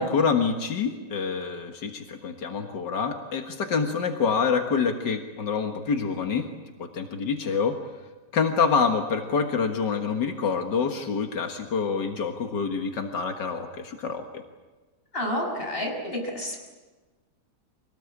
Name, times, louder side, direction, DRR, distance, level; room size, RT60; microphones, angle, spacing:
voice 1, 0.0-6.4 6.8-7.8 8.3-14.2, left 5 dB, 90° left, 4 dB, 2.2 m, -26 dB
voice 2, 15.1-16.6, equal, 30° left, 1 dB, 6.4 m, -29 dB
26.5 x 18.5 x 8.6 m, 1.3 s
omnidirectional pair, 1.8 m